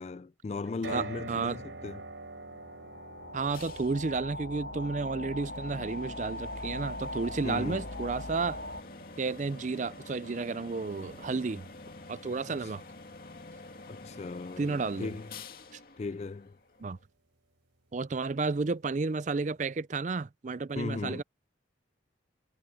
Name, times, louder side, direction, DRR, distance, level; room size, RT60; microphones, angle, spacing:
voice 1, 0.0-2.1 7.4-8.0 12.5-12.7 13.9-15.3 16.0-16.6 20.7-21.2, left 3 dB, 35° left, 0.3 m, -37 dB
sound 1, 0.8-15.0, right 3 dB, 80° right, 3.7 m, -48 dB
voice 2, 0.9-1.6 3.3-8.6 9.2-11.7 12.1-12.8 14.6-15.1 16.8-17.0 17.9-21.2, right 4 dB, 40° right, 0.4 m, -32 dB
sound 2, 2.1-8.8, left 1 dB, 75° left, 1.8 m, -41 dB
sound 3, 3.5-17.0, left 2 dB, 50° left, 2.4 m, -48 dB
head